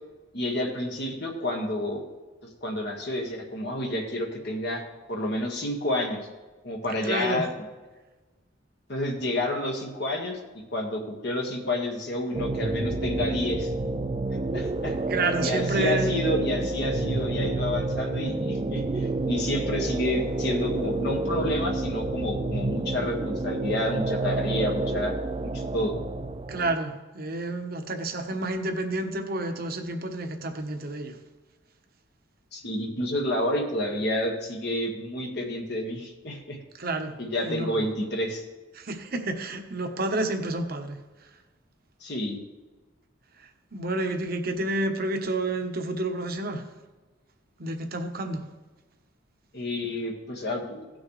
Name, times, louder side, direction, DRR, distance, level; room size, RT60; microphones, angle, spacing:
voice 1, 0.3-2.0 2.6-4.8 5.1-6.2 6.6-7.5 8.9-10.4 10.7-13.7 14.5-14.9 15.4-25.1 25.4-25.9 32.5-36.6 37.2-38.4 42.0-42.4 49.5-50.8, left 1 dB, 60° left, 1 dB, 1.6 m, -29 dB
voice 2, 7.0-7.4 15.1-16.2 26.5-31.2 36.8-37.1 37.4-37.8 38.7-41.0 43.4-46.6 47.6-48.5, right 2 dB, 50° right, 6 dB, 1.1 m, -30 dB
sound 1, 12.3-26.7, right 2 dB, 30° right, 0.4 m, -29 dB
17.0 x 6.3 x 3.2 m, 1.2 s
head